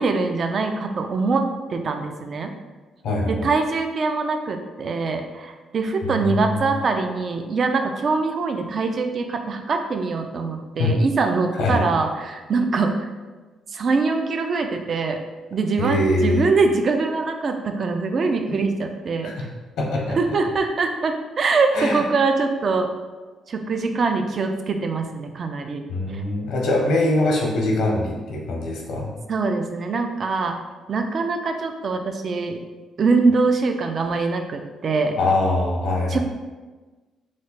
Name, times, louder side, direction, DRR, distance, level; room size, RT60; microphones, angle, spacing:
voice 1, 0.0-2.5 3.3-13.1 13.7-15.2 15.5-19.3 20.2-22.9 23.5-25.9 26.1-26.2 29.3-30.6 30.9-32.6 33.0-35.2 36.1-36.2, right 4 dB, 50° right, 6 dB, 0.4 m, -23 dB
voice 2, 3.0-3.5 6.0-6.8 10.8-10.9 11.6-11.8 15.8-16.5 18.5-18.6 19.2-19.5 19.8-20.2 21.7-22.0 25.9-29.1 35.2-36.2, left 2 dB, 80° left, -1 dB, 0.8 m, -23 dB
3.2 x 2.1 x 3.9 m, 1.3 s
cardioid pair, 90°, 0 cm